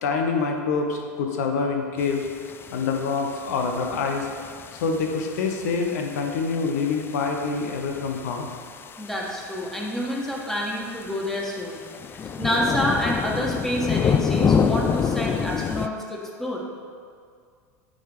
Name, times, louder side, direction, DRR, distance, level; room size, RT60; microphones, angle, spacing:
voice 1, 0.0-2.3 2.7-4.3 4.8-8.5, left 4 dB, 70° left, 3 dB, 1.0 m, -26 dB
sound 1, 2.0-15.9, left 6 dB, 25° left, 0.3 m, -29 dB
voice 2, 9.0-11.8 12.1-16.7, equal, 5° left, -2 dB, 1.6 m, -28 dB
8.9 x 4.0 x 5.0 m, 2.1 s
hypercardioid pair, 90°, 9 cm